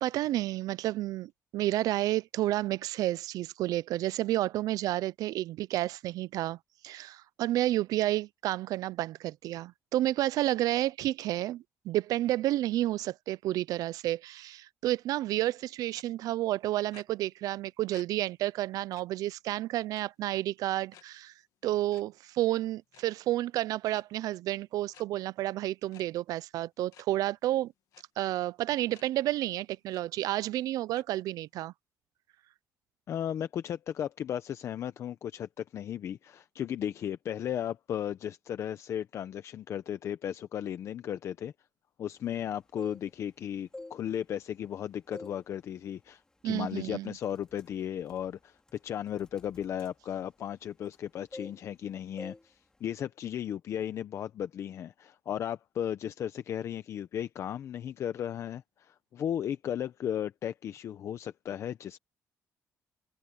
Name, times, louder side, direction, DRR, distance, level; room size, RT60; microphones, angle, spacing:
voice 1, 0.0-6.6 6.8-21.3 21.6-27.7 28.2-31.7 46.4-47.1, right 15 dB, 80° right, 0.4 m, -30 dB
sound 1, 15.9-16.0 16.9-17.0 17.9-18.0 18.4-18.5 18.9-19.0 19.9-20.3 20.9-21.0 21.9-22.0 22.8-23.0 23.9-24.0 24.9-25.0 25.9-26.0 26.9-27.0 27.9-28.0 28.9-29.0 29.5-29.6 29.9-30.0 30.9-31.0, left 11 dB, 75° left, 2.1 m, -54 dB
voice 2, 33.1-41.5 42.0-62.0, left 10 dB, 50° left, 0.7 m, -35 dB
sound 2, 42.6-43.3 43.7-44.7 45.1-45.5 45.8-46.1 46.7-46.9 47.2-51.0 51.3-51.9 52.2-52.5 52.7-53.0, left 2 dB, 10° left, 2.8 m, -48 dB
cardioid pair, 160°, 6 cm